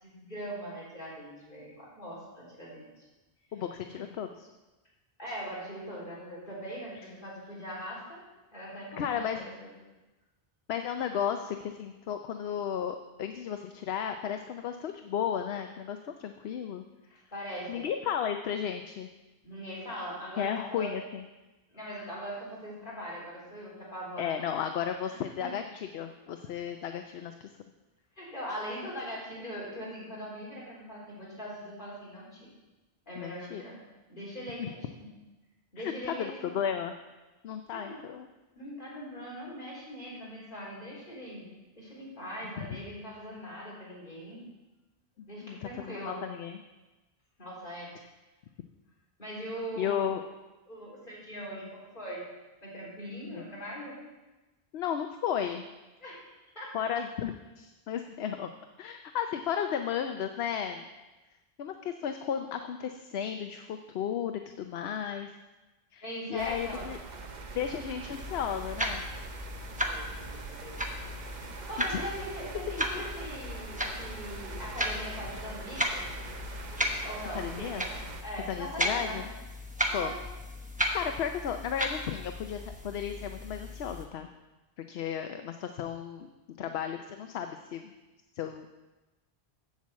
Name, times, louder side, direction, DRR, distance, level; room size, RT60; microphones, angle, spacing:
voice 1, 0.0-3.1 3.9-4.1 5.2-8.2 8.5-9.7 17.1-17.9 19.4-20.9 21.7-24.5 25.1-25.5 28.2-32.5 33.1-33.8 34.1-35.1 35.7-36.5 37.7-38.0 38.6-41.4 41.7-44.4 45.3-46.2 47.4-47.9 49.2-50.2 50.7-52.2 52.6-54.0 56.0-56.2 56.5-56.9 66.0-66.9 69.8-71.1 71.4-76.1 77.0-77.9 78.2-79.2 79.9-80.2, equal, 50° left, -7 dB, 4.0 m, -41 dB
voice 2, 3.5-4.5 9.0-9.4 10.7-16.8 17.7-19.1 20.4-21.2 24.2-27.5 33.2-33.6 34.6-34.7 35.8-36.9 37.4-38.3 42.6-42.8 45.4-46.6 47.9-48.1 49.8-50.2 53.3-53.4 54.7-55.6 56.7-58.5 58.8-60.9 61.6-65.3 65.9-66.0 66.3-67.0 67.5-69.0 71.9-72.0 77.3-77.8 78.5-79.3 79.9-80.1 80.9-84.3 84.9-86.3 86.6-87.9 88.3-88.7, left 8 dB, 75° left, 7 dB, 0.9 m, -34 dB
sound 1, 66.4-78.2, right 4 dB, 50° right, 0.8 m, -43 dB
Wanduhr - ticken, 68.1-84.1, equal, 10° right, 1.0 m, -36 dB
7.7 x 7.5 x 7.4 m, 1.1 s
omnidirectional pair, 1.1 m